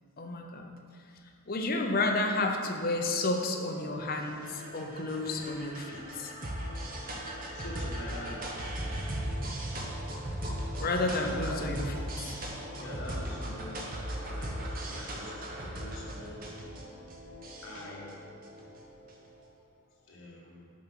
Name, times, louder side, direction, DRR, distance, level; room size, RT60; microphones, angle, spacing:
voice 1, 0.2-0.7 1.5-6.7 10.8-12.4, left 2 dB, 40° left, 3 dB, 0.7 m, -31 dB
sound 1, 3.7-19.3, right 1 dB, 40° right, 1.0 m, -38 dB
voice 2, 7.5-8.5 9.1-9.3 11.1-11.6 12.8-13.9 14.2-16.4 17.6-18.2 20.1-20.7, left 1 dB, 55° left, -4 dB, 1.7 m, -44 dB
6.2 x 5.8 x 6.0 m, 2.3 s
head